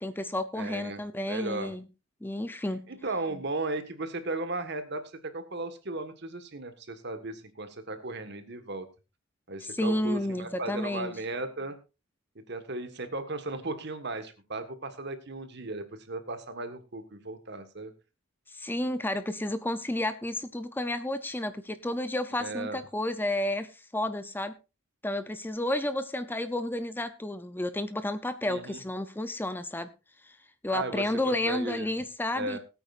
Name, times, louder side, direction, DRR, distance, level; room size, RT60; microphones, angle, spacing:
voice 1, 0.0-1.9 2.2-2.9 9.6-11.1 18.5-24.6 25.0-29.9 30.2-30.4 30.6-32.6, left 1 dB, 10° left, 11 dB, 0.5 m, -31 dB
voice 2, 0.5-1.0 1.3-1.7 2.9-8.9 9.5-11.8 12.5-17.9 22.4-22.8 28.4-28.8 30.7-31.9 32.3-32.6, right 2 dB, 55° right, 9 dB, 1.5 m, -36 dB
20.5 x 8.9 x 2.5 m, 0.29 s
head